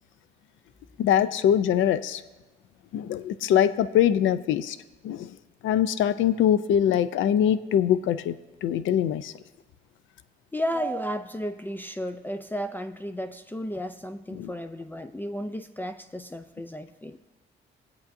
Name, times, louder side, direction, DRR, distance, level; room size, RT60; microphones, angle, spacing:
voice 1, 1.0-2.2 2.9-4.8 5.0-5.3 5.6-8.4 8.6-9.3 14.4-14.5, left 10 dB, 75° left, 14 dB, 0.5 m, -23 dB
voice 2, 10.5-17.2, equal, 10° left, 8 dB, 0.4 m, -33 dB
18.0 x 8.2 x 2.6 m, 1.2 s
cardioid pair, 90°, 20 cm